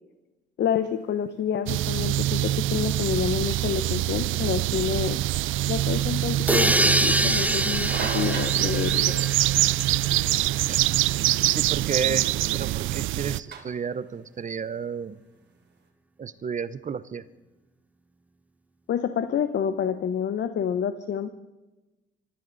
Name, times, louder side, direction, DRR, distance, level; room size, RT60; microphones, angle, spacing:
voice 1, 0.6-5.2 5.7-9.5 18.9-21.3, left 8 dB, 65° left, 11 dB, 0.9 m, -28 dB
sound 1, 0.7-15.8, right 6 dB, 60° right, 3.3 m, -44 dB
sound 2, 1.7-13.4, right 16 dB, 85° right, 0.4 m, -25 dB
sound 3, 6.5-10.2, right 1 dB, 5° right, 0.7 m, -25 dB
voice 2, 11.5-12.3 12.5-15.2 16.2-17.2, right 6 dB, 40° right, 15 dB, 0.8 m, -32 dB
25.0 x 14.0 x 4.0 m, 1.1 s
cardioid pair, 90°, 20 cm